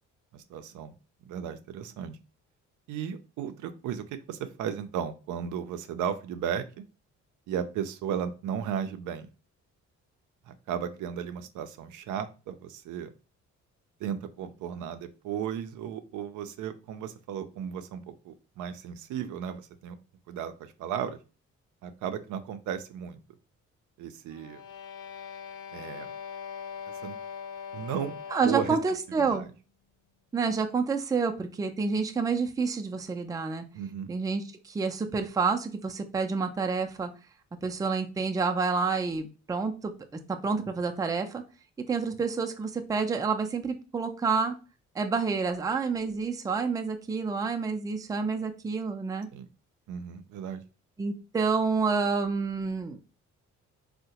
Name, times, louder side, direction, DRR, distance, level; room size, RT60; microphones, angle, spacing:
voice 1, 0.3-1.0 1.3-2.2 2.9-6.8 7.5-9.3 10.5-13.1 14.0-20.0 20.3-21.2 21.8-23.2 24.0-24.6 25.7-26.1 27.0-27.2 27.7-28.8 29.2-29.5 33.7-34.1 49.3-49.5 49.9-50.6, right 8 dB, 80° right, 10 dB, 0.5 m, -35 dB
sound 1, 24.3-29.1, left 7 dB, 85° left, 0.5 m, -41 dB
voice 2, 28.3-29.5 30.3-33.6 34.1-37.1 37.6-39.9 40.4-41.4 41.9-44.5 45.0-49.3 51.0-53.0, right 4 dB, 10° right, 5 dB, 0.4 m, -28 dB
3.7 x 2.1 x 2.8 m, 0.33 s
cardioid pair, 90°, 30 cm